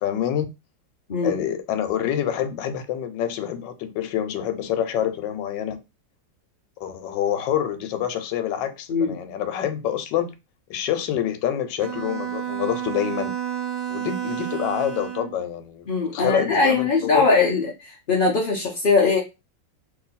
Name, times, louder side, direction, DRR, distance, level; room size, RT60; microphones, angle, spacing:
voice 1, 0.0-0.5 1.2-5.8 6.8-10.3 10.7-13.4 13.9-17.2, left 10 dB, 90° left, 1.3 m, -27 dB
Bowed string instrument, 11.8-15.4, right 10 dB, 80° right, 1.2 m, -30 dB
voice 2, 15.9-17.7 18.1-19.2, left 4 dB, 50° left, 0.6 m, -20 dB
3.0 x 2.7 x 4.0 m
omnidirectional pair, 1.9 m